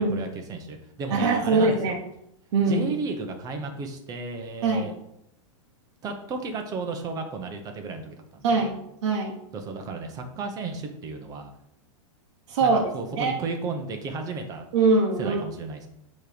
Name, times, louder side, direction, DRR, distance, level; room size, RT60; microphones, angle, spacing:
voice 1, 0.0-2.0 2.7-4.9 6.0-8.7 9.5-11.5 12.6-14.6 15.2-15.9, right 3 dB, 20° right, 5 dB, 0.9 m, -33 dB
voice 2, 1.1-2.0 2.5-2.8 4.6-4.9 8.4-9.4 12.5-12.8 13.2-13.3 14.7-15.4, right 3 dB, 60° right, -1 dB, 1.0 m, -22 dB
7.3 x 3.2 x 5.1 m, 0.78 s
supercardioid pair, 150°, 16 cm